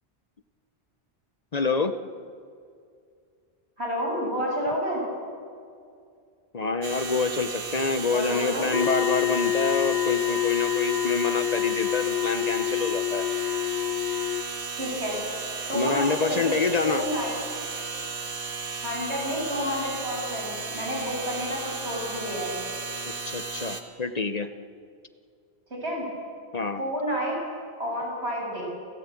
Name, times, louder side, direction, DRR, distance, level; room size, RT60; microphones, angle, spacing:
voice 1, 1.5-1.9 6.5-13.2 15.7-17.0 23.2-24.5 26.5-26.8, left 4 dB, 40° left, 10 dB, 0.9 m, -27 dB
voice 2, 3.8-5.0 8.1-8.7 14.7-15.2 15.7-16.6 16.8-17.3 18.8-22.6 25.7-26.1 26.8-27.4 27.8-28.7, equal, 90° right, -3 dB, 7.5 m, -30 dB
sound 1, 6.8-23.8, right 4 dB, 60° right, 1.7 m, -35 dB
sound 2, 8.7-14.4, left 13 dB, 65° left, 1.1 m, -27 dB
29.0 x 14.5 x 8.4 m, 2.3 s
omnidirectional pair, 1.1 m